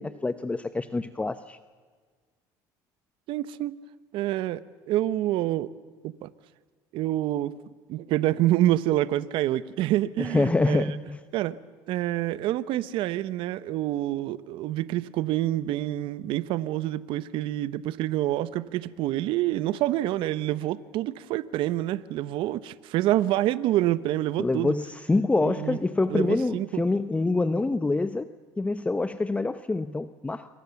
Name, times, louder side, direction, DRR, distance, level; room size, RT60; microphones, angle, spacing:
voice 1, 0.0-1.6 10.2-11.2 24.4-28.3 28.6-30.5, left 3 dB, 15° left, 1.0 m, -26 dB
voice 2, 3.3-3.8 4.1-5.7 6.0-6.3 6.9-7.6 7.9-10.8 11.3-11.6 11.9-24.8 25.4-25.8 26.1-26.8, right 14 dB, 70° right, 1.0 m, -27 dB
27.5 x 25.0 x 7.1 m
supercardioid pair, 100°, 9 cm